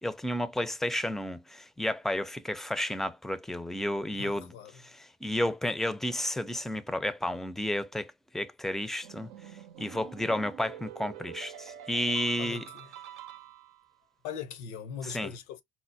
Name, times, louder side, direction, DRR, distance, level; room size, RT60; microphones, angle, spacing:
voice 1, 0.0-4.5 4.8-9.3 9.8-12.7 15.0-15.3, left 1 dB, ahead, 0.4 m, -32 dB
voice 2, 4.2-4.7 12.4-12.9 14.2-15.6, left 7 dB, 85° left, 0.8 m, -40 dB
sound 1, 9.0-14.0, right 11 dB, 80° right, 0.6 m, -46 dB
4.2 x 2.1 x 2.5 m
hypercardioid pair, 65°, 33 cm